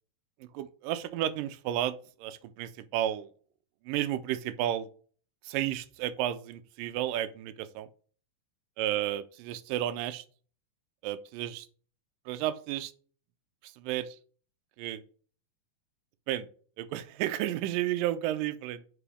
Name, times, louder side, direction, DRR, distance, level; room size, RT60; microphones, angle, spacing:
voice 1, 0.4-3.3 3.8-4.9 5.4-7.9 8.8-10.3 11.0-11.7 12.3-12.9 13.6-14.2 14.8-15.0 16.3-16.5 16.8-18.8, right 12 dB, 85° right, 13 dB, 2.2 m, -32 dB
5.6 x 4.9 x 4.9 m, 0.42 s
omnidirectional pair, 3.8 m